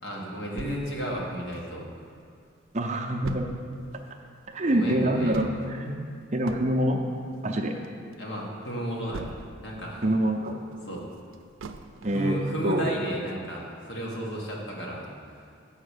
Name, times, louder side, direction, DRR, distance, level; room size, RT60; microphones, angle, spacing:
voice 1, 0.0-1.8 4.7-5.4 8.2-9.3 9.6-10.1 10.8-11.0 12.0-15.1, equal, 60° left, -3 dB, 1.6 m, -33 dB
sound 1, 0.6-2.1 2.5-2.6 2.8-9.8 10.2-12.3 12.8-12.9 13.3-13.4, right 3 dB, 85° right, 0.5 m, -42 dB
voice 2, 2.7-3.5 4.5-6.0 6.3-7.0 7.4-7.7 10.0-10.6 12.0-12.4 12.6-12.9, right 1 dB, 35° right, 2 dB, 0.6 m, -25 dB
7.8 x 5.7 x 6.6 m, 2.4 s
head